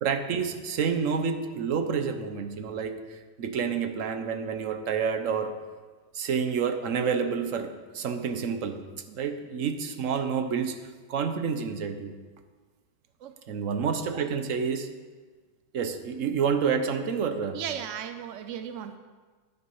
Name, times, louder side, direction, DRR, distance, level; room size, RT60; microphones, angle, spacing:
voice 1, 0.0-5.5 6.1-8.8 9.2-10.8 11.1-12.1 13.5-14.9 15.7-17.6, right 6 dB, 55° right, 8 dB, 1.0 m, -29 dB
voice 2, 17.5-19.0, right 9 dB, 75° right, 9 dB, 0.7 m, -36 dB
9.9 x 9.5 x 5.5 m, 1.4 s
omnidirectional pair, 2.0 m